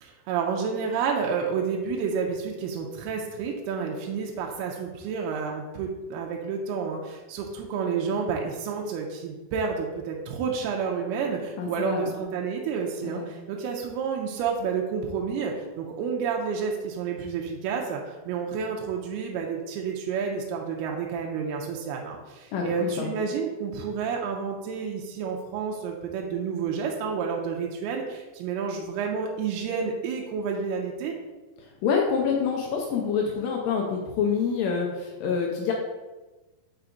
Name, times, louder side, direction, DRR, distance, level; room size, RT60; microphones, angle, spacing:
voice 1, 0.0-31.2, right 6 dB, 85° right, 0 dB, 2.6 m, -30 dB
voice 2, 11.6-12.1 13.0-13.3 22.5-23.1 31.8-35.7, left 6 dB, 80° left, 0 dB, 2.0 m, -26 dB
5.7 x 4.6 x 3.9 m, 1.2 s
omnidirectional pair, 4.6 m